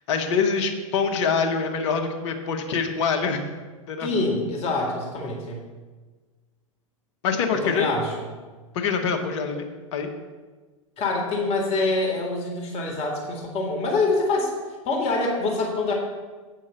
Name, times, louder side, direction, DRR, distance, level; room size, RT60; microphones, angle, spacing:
voice 1, 0.1-3.5 3.9-4.1 7.2-7.9 8.7-9.6 9.9-10.1, left 5 dB, 55° left, 5 dB, 1.4 m, -24 dB
voice 2, 4.0-5.6 7.5-8.3 11.0-14.5 14.8-15.9, left 3 dB, 35° left, 0 dB, 2.0 m, -25 dB
8.6 x 5.4 x 6.9 m, 1.3 s
figure-of-eight pair, 95°, 18 cm